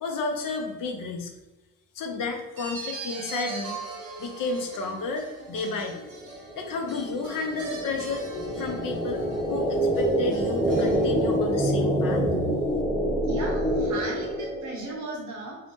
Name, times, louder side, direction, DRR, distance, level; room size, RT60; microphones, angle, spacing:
voice 1, 0.0-1.3 1.9-3.8 4.2-6.0 6.6-8.2 8.6-9.2 9.5-12.2, left 3 dB, 65° left, 3 dB, 0.6 m, -31 dB
sound 1, 2.6-11.6, right 3 dB, 80° right, 1.0 m, -40 dB
sound 2, 6.1-14.9, right 1 dB, 5° left, 0.8 m, -26 dB
voice 2, 13.2-15.6, right 2 dB, 55° right, -3 dB, 0.9 m, -36 dB
2.7 x 2.1 x 2.9 m, 1.1 s
cardioid pair, 75°, 35 cm